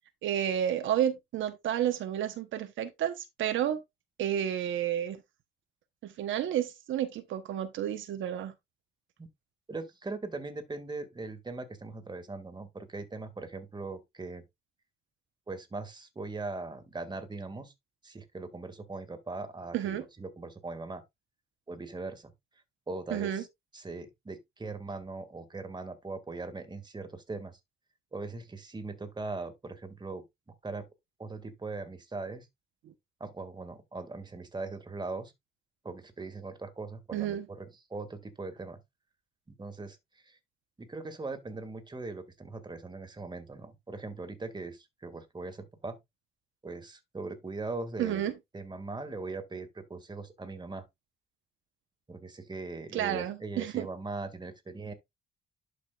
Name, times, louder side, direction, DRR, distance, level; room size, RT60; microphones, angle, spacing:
voice 1, 0.2-3.8 4.2-5.2 6.0-8.5 19.7-20.0 23.1-23.4 32.8-32.9 37.1-37.5 48.0-48.3 52.9-53.9, right 10 dB, 80° right, 1.1 m, -31 dB
voice 2, 9.7-14.4 15.5-17.7 18.0-21.0 21.7-22.3 22.9-23.5 23.7-27.6 28.1-30.3 30.6-30.9 31.2-32.5 33.2-35.3 35.8-38.8 39.5-40.0 40.2-40.4 40.8-46.0 46.6-48.2 48.5-50.8 52.1-54.9, right 3 dB, 20° right, 2.1 m, -40 dB
11.5 x 5.2 x 2.5 m
cardioid pair, 90°, 20 cm